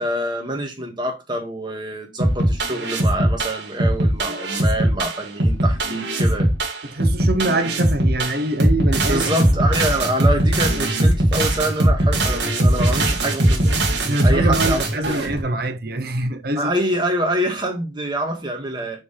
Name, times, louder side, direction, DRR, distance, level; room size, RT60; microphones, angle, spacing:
voice 1, 0.0-6.5 9.1-13.7 14.2-15.3 16.6-19.0, right 1 dB, 25° right, 2.0 m, -26 dB
sound 1, 2.2-15.4, right 1 dB, 75° right, 2.1 m, -20 dB
voice 2, 6.9-9.4 14.0-16.7, right 2 dB, 55° right, 1.0 m, -24 dB
6.1 x 5.2 x 3.4 m
head